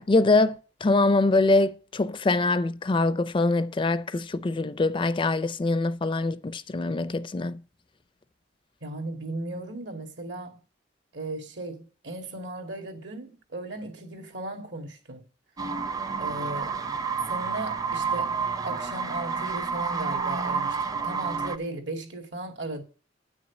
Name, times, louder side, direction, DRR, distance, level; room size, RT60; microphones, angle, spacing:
voice 1, 0.0-7.6, left 2 dB, 30° left, 0.4 m, -24 dB
voice 2, 8.8-10.6 11.1-15.2 16.2-16.8 17.2-22.8, right 2 dB, 70° right, 2.1 m, -36 dB
sound 1, 15.6-21.6, right 5 dB, 20° right, 0.6 m, -29 dB
9.6 x 6.3 x 7.1 m
head